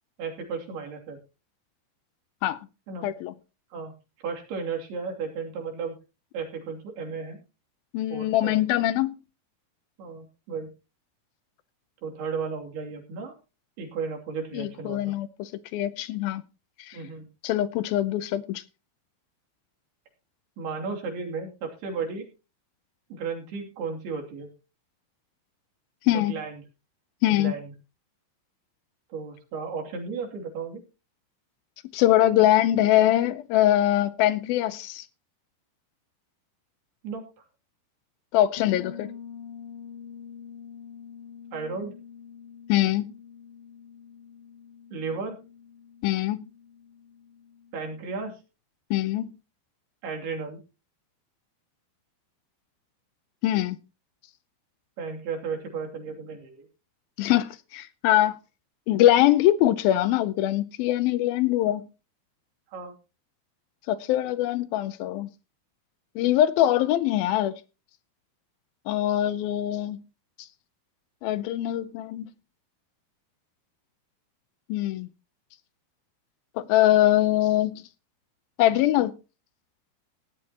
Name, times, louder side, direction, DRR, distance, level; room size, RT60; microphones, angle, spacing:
voice 1, 0.2-1.2 2.9-3.1 3.7-3.9 4.2-6.0 6.3-7.4 8.1-8.6 10.0-10.7 12.0-13.4 13.8-15.1 16.9-17.3 20.6-22.3 23.1-24.5 26.1-26.6 27.3-27.7 29.1-30.8 37.0-37.2 41.5-41.9 44.9-45.4 47.7-48.4 50.0-50.6 55.0-56.7 62.7-62.9, right 5 dB, 85° right, 4.8 m, -34 dB
voice 2, 3.0-3.3 7.9-9.2 14.5-16.4 16.8-17.0 17.4-18.6 26.0-26.3 27.2-27.5 31.9-35.1 38.3-39.1 42.7-43.1 46.0-46.5 48.9-49.3 53.4-53.8 57.2-58.4 58.9-61.8 63.9-65.3 66.2-67.5 68.9-70.0 71.2-72.3 74.7-75.1 76.6-77.8 78.6-79.1, left 13 dB, 80° left, 2.4 m, -23 dB
Bass guitar, 38.6-48.2, left 7 dB, 40° left, 3.1 m, -46 dB
17.0 x 12.0 x 2.9 m
omnidirectional pair, 4.4 m